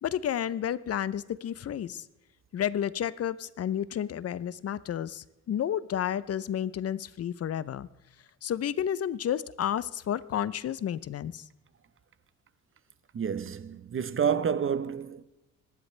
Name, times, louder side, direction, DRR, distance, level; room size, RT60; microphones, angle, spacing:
voice 1, 0.0-2.0 2.5-7.9 8.4-11.5, left 10 dB, 55° left, 0.7 m, -31 dB
voice 2, 13.1-15.2, right 7 dB, 45° right, 1.0 m, -29 dB
25.0 x 11.0 x 3.3 m
cardioid pair, 90°, 30 cm